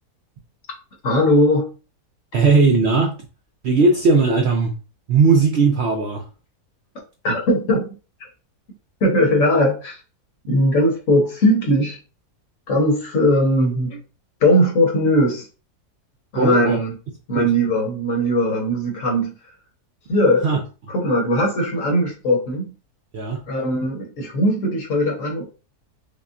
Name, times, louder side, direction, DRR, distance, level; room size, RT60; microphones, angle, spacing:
voice 1, 1.0-1.7 7.2-7.9 9.0-10.0 10.5-12.0 12.7-14.0 14.4-15.5 16.3-16.9 17.3-19.3 20.1-20.5 20.9-22.7 23.5-25.4, equal, 60° left, 1.4 m, -19 dB
voice 2, 2.3-3.2 3.6-4.8 5.1-6.3 16.4-16.8 17.3-17.5 20.4-20.6 23.1-23.4, right 4 dB, 65° right, 0.6 m, -17 dB
5.3 x 2.2 x 2.5 m
omnidirectional pair, 1.6 m